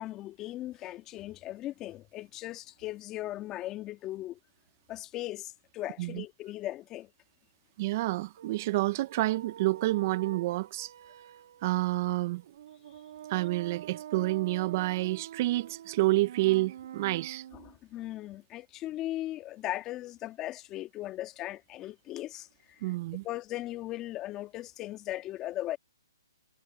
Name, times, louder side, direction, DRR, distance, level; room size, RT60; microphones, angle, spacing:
voice 1, 0.0-4.4 4.9-7.1 17.5-23.0 23.2-25.8, left 15 dB, 20° left, 1.9 m, -38 dB
voice 2, 7.8-10.9 11.6-12.4 13.3-17.4 22.8-23.2, right 19 dB, 35° right, 0.6 m, -29 dB
sound 1, 8.4-17.8, right 10 dB, 50° right, 2.0 m, -46 dB
hypercardioid pair, 155°, 2 cm